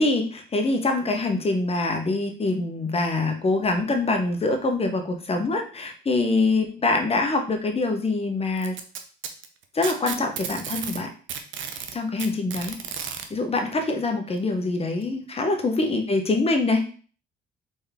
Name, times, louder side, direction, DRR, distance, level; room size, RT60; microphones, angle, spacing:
voice 1, 0.0-8.7 9.7-11.1 11.9-12.8 13.3-16.8, left 2 dB, 30° left, 4 dB, 1.0 m, -24 dB
Packing tape duct tape, 8.6-11.0 11.3-13.3 14.4-14.5 15.0-15.1 16.0-16.1, right 7 dB, 75° right, 0.7 m, -33 dB
4.1 x 3.5 x 3.5 m, 0.40 s
cardioid pair, 90°, 20 cm